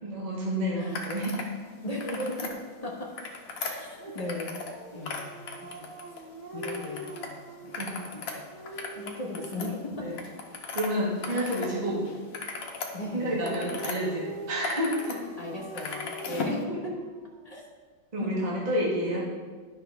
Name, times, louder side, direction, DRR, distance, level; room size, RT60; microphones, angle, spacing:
voice 1, 0.0-1.4 7.7-8.0 10.0-10.1 10.7-12.1 13.1-15.2 18.1-19.2, equal, 25° right, -6 dB, 1.5 m, -29 dB
sound 1, 0.9-1.5 1.9-2.5 3.0-4.8 5.0-6.2 6.6-7.3 7.6-11.7 12.0-14.0 14.4-15.2 15.4-16.6, left 4 dB, 55° left, 1.2 m, -37 dB
voice 2, 1.8-3.2 3.6-4.6 4.9-5.3 5.8-6.0 6.5-7.3 7.6-8.4 9.0-10.1 11.3-11.6 12.9-13.3 15.4-17.1 17.4-17.6 18.2-18.5, left 1 dB, 30° left, -2 dB, 0.7 m, -37 dB
Dog, 4.0-9.8 13.0-17.6, right 1 dB, 45° right, 0.5 m, -44 dB
11.0 x 5.7 x 3.4 m, 1.5 s
omnidirectional pair, 2.0 m